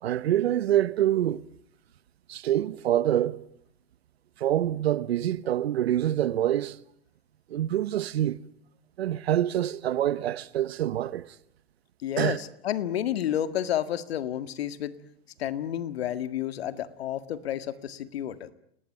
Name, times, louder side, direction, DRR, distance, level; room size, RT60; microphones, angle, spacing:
voice 1, 0.0-1.4 2.3-3.4 4.4-6.8 7.5-8.4 9.0-11.3 12.2-12.4, right 12 dB, 85° right, 1.1 m, -26 dB
voice 2, 12.0-15.0 15.4-18.5, left 11 dB, 80° left, 1.9 m, -30 dB
29.0 x 19.0 x 9.2 m
hypercardioid pair, 105°, 30 cm